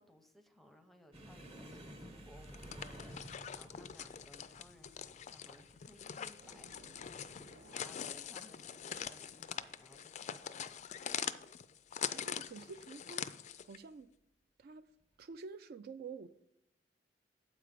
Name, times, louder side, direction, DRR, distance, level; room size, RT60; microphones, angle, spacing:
voice 1, 0.0-11.2, left 1 dB, ahead, 0.6 m, -61 dB
sound 1, 1.1-8.3 8.6-9.0 9.4-9.5 10.4-10.9 11.9-12.1 13.5-13.6, equal, 35° right, 1.0 m, -54 dB
sound 2, 2.4-13.8, left 8 dB, 40° left, 0.3 m, -44 dB
sound 3, 6.4-8.1 8.9-9.4 9.9-10.0, right 2 dB, 80° right, 0.8 m, -60 dB
voice 2, 12.1-13.3 13.7-14.1 14.6-14.8 15.2-16.3, right 4 dB, 60° right, 0.4 m, -48 dB
7.6 x 4.8 x 6.6 m
head